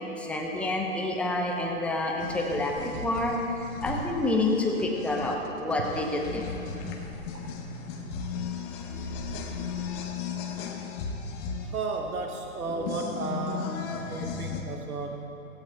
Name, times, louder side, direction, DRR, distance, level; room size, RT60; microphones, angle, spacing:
voice 1, 0.2-3.4 3.8-6.4 8.6-10.0, left 2 dB, 5° left, 0 dB, 0.7 m, -29 dB
sound 1, 2.2-14.6, left 6 dB, 25° left, 1.1 m, -36 dB
voice 2, 6.8-7.4 11.6-15.3, right 3 dB, 85° right, 3 dB, 1.1 m, -34 dB
17.0 x 16.5 x 2.3 m, 3.0 s
hypercardioid pair, 130°, 43 cm